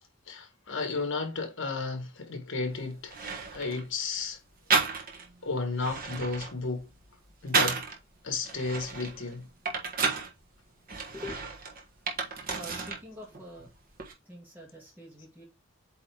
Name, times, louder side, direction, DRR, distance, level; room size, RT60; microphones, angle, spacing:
voice 1, 0.3-3.2 3.5-4.4 5.4-6.9 7.4-7.8 8.2-9.5 12.2-12.3, left 3 dB, 65° left, 1.5 m, -33 dB
sound 1, 2.6-2.7 3.1-3.9 4.7-5.3 5.7-8.0 8.4-10.3 10.9-13.0 13.3-14.1, right 4 dB, 45° right, 1.5 m, -31 dB
voice 2, 11.1-11.4 12.5-13.7 14.2-15.4, left 1 dB, 10° right, 1.7 m, -44 dB
8.2 x 3.3 x 3.5 m
head